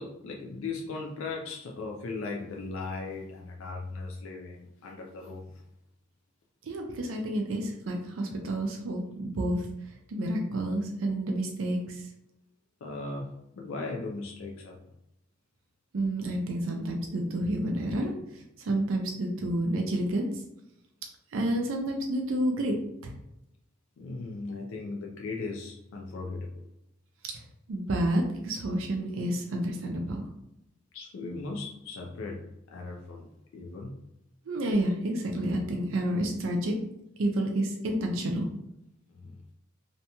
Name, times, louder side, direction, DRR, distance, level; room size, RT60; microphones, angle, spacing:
voice 1, 0.0-5.6 12.8-14.8 24.0-26.6 30.9-34.0 39.1-39.4, left 3 dB, 70° left, 0 dB, 0.4 m, -38 dB
voice 2, 6.6-12.1 15.9-20.4 21.3-22.8 23.0-23.1 27.7-30.3 34.5-36.8 37.2-38.5, right 1 dB, 70° right, 2 dB, 0.4 m, -30 dB
2.8 x 2.6 x 2.2 m, 0.84 s
head